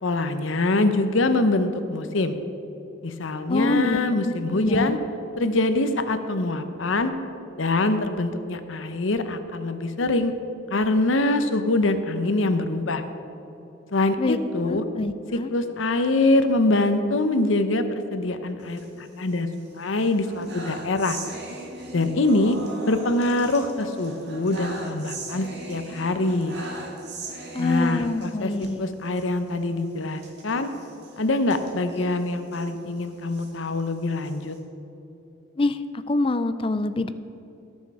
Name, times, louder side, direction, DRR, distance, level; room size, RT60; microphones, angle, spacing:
voice 1, 0.0-2.4 3.0-5.0 5.4-7.1 7.6-10.3 10.7-13.0 13.9-14.8 15.5-21.2 21.9-22.6 22.9-26.6 27.6-28.5 28.8-30.7 31.2-34.6, left 2 dB, 75° left, 9 dB, 0.8 m, -24 dB
voice 2, 3.5-5.0 14.2-14.4 14.7-15.5 27.5-28.8 35.6-35.8 36.1-37.1, left 2 dB, 25° left, 12 dB, 0.4 m, -25 dB
sound 1, 18.6-19.6 19.9-28.7 29.1-29.2 29.5-29.6 30.2-32.7 33.2-34.6, right 2 dB, 55° right, 1.9 m, -39 dB
18.0 x 6.3 x 4.8 m, 3.0 s
head